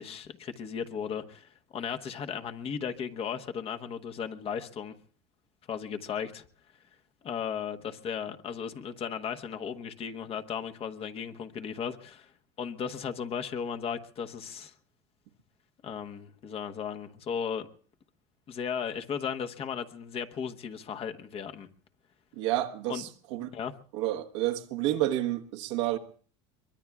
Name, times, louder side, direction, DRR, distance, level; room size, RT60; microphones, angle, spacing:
voice 1, 0.0-5.0 5.7-6.4 7.2-12.3 12.6-14.7 15.8-17.7 18.5-21.7 22.9-23.1 23.5-23.7, left 7 dB, 40° left, 1.2 m, -36 dB
voice 2, 22.4-23.5 23.9-26.0, right 14 dB, 80° right, 1.3 m, -30 dB
23.5 x 21.5 x 2.4 m
supercardioid pair, 105°, 15 cm